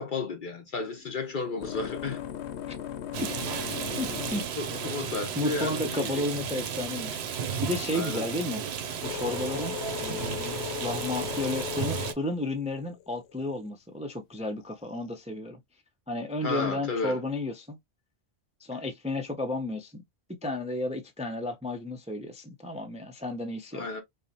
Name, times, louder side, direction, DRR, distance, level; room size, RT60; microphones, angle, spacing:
voice 1, 0.0-2.2 4.6-6.3 7.5-7.6 7.9-8.3 16.4-17.2 23.7-24.0, left 4 dB, 55° left, 0.8 m, -33 dB
sound 1, 0.8-7.1 7.9-13.7 14.6-15.2, left 10 dB, 90° left, 0.9 m, -39 dB
Rain, 3.1-12.1, right 8 dB, 75° right, 0.9 m, -34 dB
voice 2, 4.0-4.4 5.4-8.6 9.0-9.7 10.0-15.6 16.1-17.8 18.6-20.0 20.4-23.9, left 2 dB, 10° right, 0.4 m, -33 dB
5.0 x 2.0 x 2.8 m
omnidirectional pair, 1.1 m